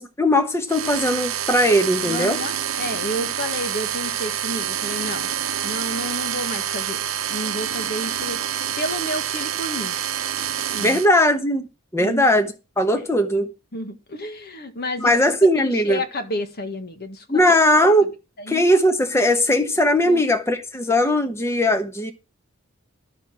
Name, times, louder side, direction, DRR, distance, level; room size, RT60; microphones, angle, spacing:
voice 1, 0.0-2.4 10.8-11.7 11.9-13.5 15.0-16.0 17.3-18.1 18.5-22.1, left 1 dB, 15° left, 1.1 m, -19 dB
sound 1, 0.7-11.1, right 10 dB, 90° right, 1.1 m, -27 dB
voice 2, 2.0-5.3 5.6-8.4 8.8-9.9 10.7-11.0 12.0-12.2 12.9-13.0 13.7-15.1 15.5-17.4 18.4-18.6 20.1-20.2, left 1 dB, 50° left, 1.6 m, -31 dB
12.5 x 6.8 x 6.1 m
head